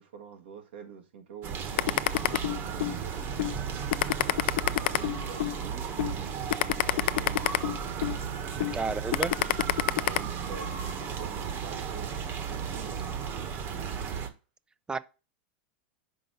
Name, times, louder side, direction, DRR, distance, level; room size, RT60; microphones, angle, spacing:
voice 1, 0.0-3.5 4.5-8.0 8.5-8.7 9.8-13.1, right 7 dB, 80° right, 1.6 m, -46 dB
sound 1, 1.4-14.3, right 7 dB, 45° right, 1.4 m, -35 dB
sound 2, 1.8-2.9 3.4-3.5 3.9-5.5 6.0-6.1 6.5-8.2 8.6-8.7 9.1-10.2, left 15 dB, 75° left, 0.4 m, -26 dB
voice 2, 8.7-9.4 14.9-15.0, right 4 dB, 15° right, 0.6 m, -31 dB
5.5 x 5.3 x 5.6 m
hypercardioid pair, 110°, 6 cm